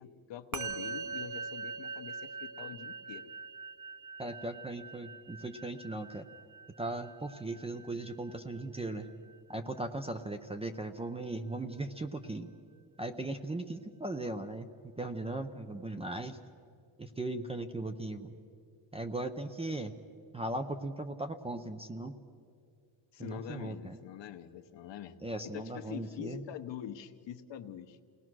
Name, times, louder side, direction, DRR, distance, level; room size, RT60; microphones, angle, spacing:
voice 1, 0.0-3.3 23.1-25.2 25.4-28.0, left 10 dB, 65° left, 9 dB, 1.0 m, -44 dB
Musical instrument, 0.5-10.1, right 5 dB, 40° right, 1.1 m, -43 dB
voice 2, 4.2-6.3 6.8-9.1 9.5-12.5 13.0-14.7 15.0-16.4 17.0-18.3 18.9-19.9 20.3-22.1 23.2-24.0 25.2-26.4, right 2 dB, 15° right, 7 dB, 0.5 m, -38 dB
29.5 x 19.0 x 6.1 m, 2.3 s
cardioid pair, 175°, 47 cm